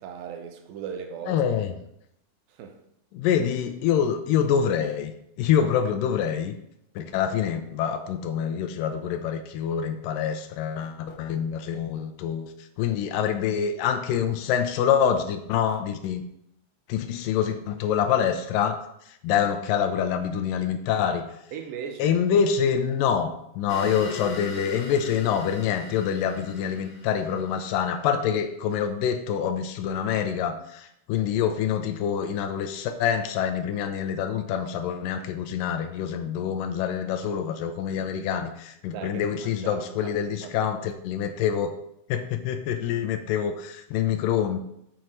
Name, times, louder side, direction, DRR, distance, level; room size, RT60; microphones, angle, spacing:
voice 1, 0.0-1.4 2.5-2.8 19.3-19.5 19.8-19.9 21.5-22.2 38.9-40.7, right 7 dB, 90° right, 2.6 m, -38 dB
voice 2, 1.3-1.7 3.1-5.1 5.4-6.5 7.0-12.5 12.8-16.2 16.9-18.8 19.2-21.2 22.0-41.7 42.1-44.6, left 8 dB, 80° left, 2.2 m, -26 dB
sound 1, 23.7-28.3, left 2 dB, 50° left, 2.9 m, -41 dB
7.6 x 4.6 x 5.4 m
omnidirectional pair, 4.0 m